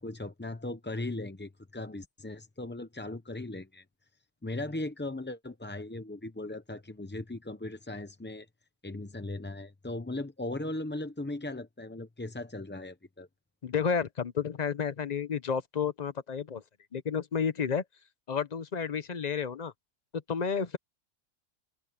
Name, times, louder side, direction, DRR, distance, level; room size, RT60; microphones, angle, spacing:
voice 1, 0.0-3.8 4.4-8.5 8.8-13.3, left 2 dB, 15° left, 0.5 m, -38 dB
voice 2, 13.6-16.6 16.9-17.8 18.3-19.7 20.1-20.8, left 6 dB, 35° left, 0.8 m, -31 dB
omnidirectional pair, 1.4 m